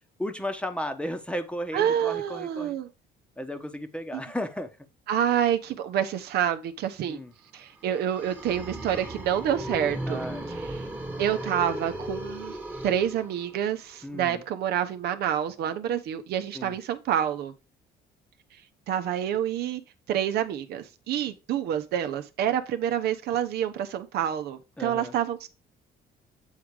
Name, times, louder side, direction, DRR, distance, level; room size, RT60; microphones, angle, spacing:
voice 1, 0.2-2.8 3.4-4.7 7.1-7.3 10.1-10.5 14.0-14.4 16.5-16.8 24.8-25.1, equal, 5° left, 1.0 m, -34 dB
voice 2, 1.7-2.9 4.1-4.2 5.1-7.2 7.5-10.8 11.2-12.6 12.8-17.5 18.9-19.8 20.1-25.5, right 10 dB, 70° right, 0.9 m, -28 dB
sound 1, 7.8-13.7, right 1 dB, 10° right, 1.3 m, -36 dB
8.4 x 3.8 x 4.8 m
cardioid pair, 110°, 17 cm